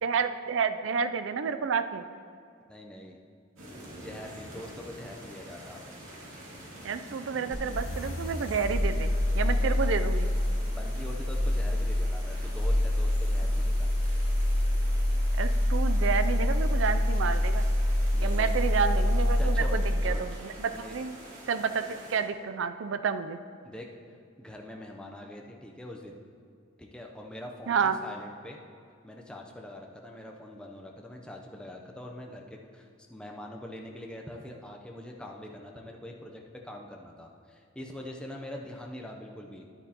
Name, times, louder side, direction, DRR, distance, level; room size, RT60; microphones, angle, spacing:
voice 1, 0.0-2.0 6.8-10.3 15.4-17.6 18.2-21.2 21.5-23.4 27.7-28.0, right 6 dB, 65° right, 10 dB, 0.4 m, -30 dB
voice 2, 2.7-3.2 4.0-5.8 9.4-9.8 10.7-13.9 18.1-18.5 19.4-20.2 20.7-21.0 23.6-23.9 24.4-26.2 26.8-28.6 29.0-39.7, left 1 dB, 5° left, 0 dB, 0.6 m, -43 dB
sound 1, 3.5-22.2, right 1 dB, 85° right, 2.3 m, -47 dB
sound 2, 7.5-20.2, left 1 dB, 80° left, 1.0 m, -26 dB
10.5 x 8.9 x 2.9 m, 2.3 s
head